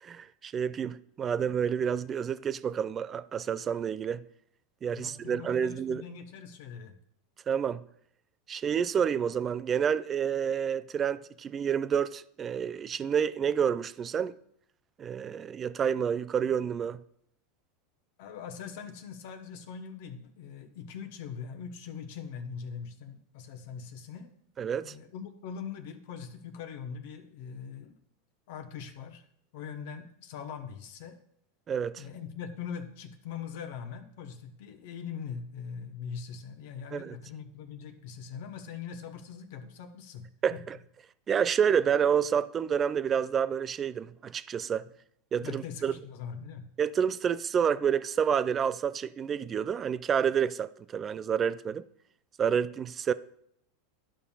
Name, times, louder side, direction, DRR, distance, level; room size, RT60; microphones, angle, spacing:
voice 1, 0.0-4.2 4.8-6.0 7.5-7.8 8.5-14.4 15.0-17.0 24.6-24.9 31.7-32.0 36.9-37.2 40.4-40.8 41.3-44.8 45.3-45.9 46.8-51.8 52.4-53.1, right 7 dB, 30° right, 0.4 m, -29 dB
voice 2, 4.9-6.9 18.2-24.3 24.8-28.0 28.5-29.2 29.5-31.2 32.0-40.6 45.4-46.6, left 7 dB, 65° left, 0.9 m, -42 dB
11.5 x 5.5 x 2.3 m
hypercardioid pair, 95°, 0 cm